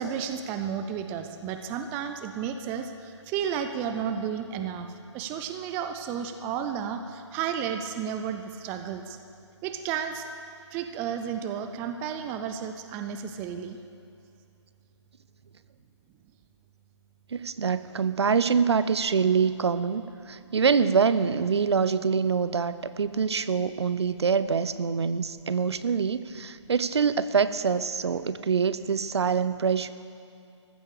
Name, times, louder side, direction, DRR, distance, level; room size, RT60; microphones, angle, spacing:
voice 1, 0.0-9.2 9.6-10.3 10.7-13.8, right 8 dB, 10° right, 7 dB, 0.4 m, -32 dB
voice 2, 17.3-29.9, right 6 dB, 60° right, 14 dB, 0.7 m, -25 dB
15.0 x 13.0 x 6.6 m, 2.5 s
figure-of-eight pair, 140°, 16 cm